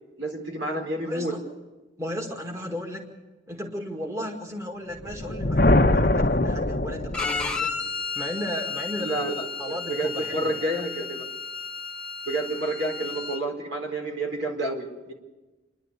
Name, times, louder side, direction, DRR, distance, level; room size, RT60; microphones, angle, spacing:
voice 1, 0.2-1.3 9.0-11.3 12.3-15.1, right 1 dB, 75° right, 2 dB, 4.3 m, -29 dB
voice 2, 1.0-1.4 2.0-3.1 3.5-7.7 8.2-9.2 9.6-10.7, equal, 15° right, 1 dB, 2.0 m, -35 dB
Thunder, 5.0-7.6, left 1 dB, 50° left, 0.9 m, -22 dB
Bowed string instrument, 7.1-13.4, left 5 dB, 5° left, 0.9 m, -33 dB
28.0 x 11.5 x 8.2 m, 1.2 s
head